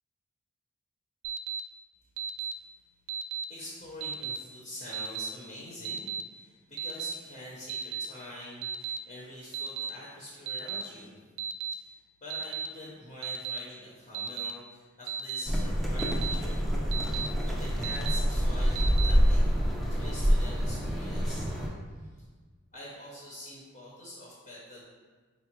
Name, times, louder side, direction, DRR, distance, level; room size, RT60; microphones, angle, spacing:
Alarm, 1.2-1.6 2.2-2.5 3.1-3.4 4.0-4.4 4.9-5.3 5.8-6.2 6.8-7.1 7.7-8.1 8.6-9.0 9.5-9.9 10.5-10.8 11.4-11.7 12.3-12.7 13.2-13.6 14.1-14.5 15.1-15.4 16.0-16.3 16.9-17.3 17.8-18.2 18.8-19.1, right 8 dB, 85° right, 0.3 m, -34 dB
voice 1, 3.5-11.1 11.7-16.7 17.6-19.4 19.9-21.5 22.1-22.3 22.7-24.8, left 1 dB, 35° left, -5 dB, 0.8 m, -45 dB
sound 1, 15.5-21.7, equal, ahead, 0.4 m, -27 dB
4.0 x 2.2 x 4.5 m, 1.4 s
head